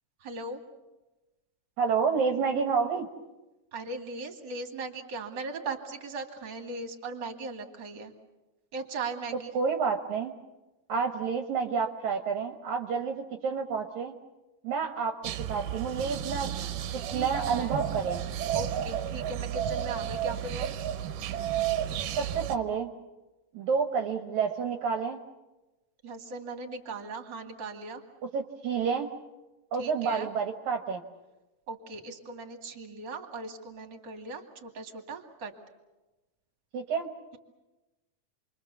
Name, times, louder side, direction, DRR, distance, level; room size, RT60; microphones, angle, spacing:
voice 1, 0.2-0.6 3.7-8.1 8.7-9.5 17.1-17.8 18.5-20.8 26.0-28.0 29.8-30.3 31.7-35.5, right 3 dB, 35° right, 4 dB, 2.7 m, -38 dB
voice 2, 1.8-3.1 9.5-10.3 10.9-14.1 14.6-18.2 22.2-22.9 23.5-25.2 28.3-29.1 29.7-31.0 36.7-37.1, right 5 dB, 70° right, 5 dB, 2.4 m, -29 dB
sound 1, 15.2-22.6, right 10 dB, 90° right, 2.6 m, -32 dB
28.5 x 23.5 x 7.0 m, 1.1 s
omnidirectional pair, 3.7 m